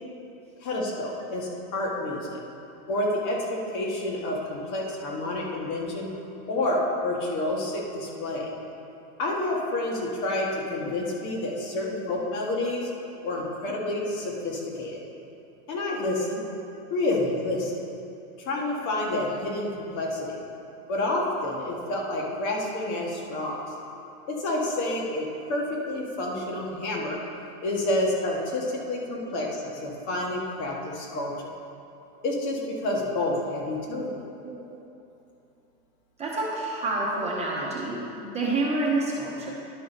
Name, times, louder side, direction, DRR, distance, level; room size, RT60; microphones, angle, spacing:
voice 1, 0.6-2.4 2.9-6.1 6.5-8.5 9.2-12.9 13.2-15.0 15.7-16.4 16.9-17.8 18.4-20.4 20.9-23.6 24.3-27.2 27.6-31.5 32.2-34.1, left 1 dB, 60° left, -2 dB, 1.8 m, -29 dB
voice 2, 36.2-39.5, right 2 dB, 15° right, -5 dB, 1.0 m, -28 dB
11.5 x 4.6 x 4.1 m, 2.8 s
supercardioid pair, 140°, 46 cm